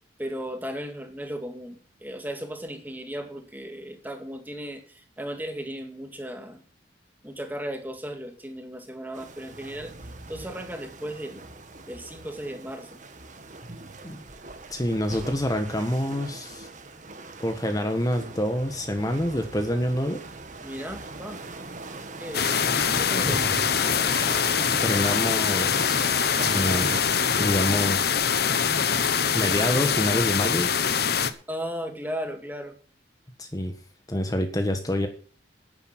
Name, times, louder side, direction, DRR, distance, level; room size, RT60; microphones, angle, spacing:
voice 1, 0.2-6.6 7.2-9.9 10.3-11.5 11.9-13.0 20.6-21.5 22.2-23.7 31.5-32.8, equal, 10° right, 6 dB, 2.1 m, -36 dB
sound 1, 9.1-27.1, right 2 dB, 45° right, 1.7 m, -40 dB
voice 2, 14.7-16.7 17.4-20.2 24.8-26.0 26.4-27.0 27.4-28.3 29.3-30.7 33.4-33.7 34.1-35.1, left 1 dB, 20° left, 6 dB, 1.4 m, -27 dB
sound 2, 22.3-31.3, left 7 dB, 60° left, 1.1 m, -24 dB
10.5 x 10.0 x 6.0 m, 0.42 s
head